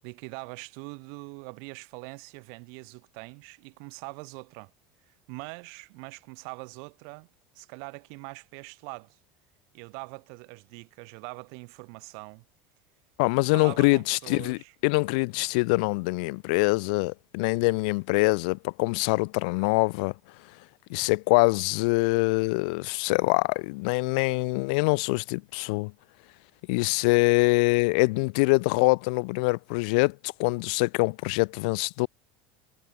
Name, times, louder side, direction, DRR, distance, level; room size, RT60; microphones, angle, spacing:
voice 1, 0.0-4.7 5.1-7.3 7.5-9.2 9.7-12.4 13.5-14.8, right 40 dB or more, 65° right, 7.7 m, -43 dB
voice 2, 13.2-20.1 20.9-25.9 26.7-32.1, left 28 dB, 75° left, 4.3 m, -24 dB
supercardioid pair, 135°, 5 cm